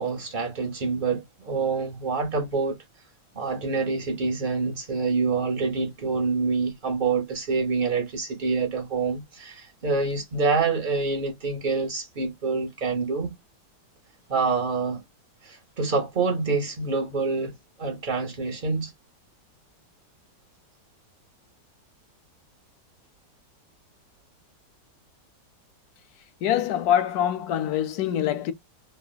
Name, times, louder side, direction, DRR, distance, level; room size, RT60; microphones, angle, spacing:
voice 1, 0.0-2.8 3.3-13.3 14.3-15.0 15.4-17.5 17.8-18.9, right 4 dB, 85° right, 0.4 m, -26 dB
voice 2, 26.4-28.5, left 10 dB, 70° left, 1.0 m, -24 dB
3.2 x 2.4 x 2.2 m
omnidirectional pair, 1.9 m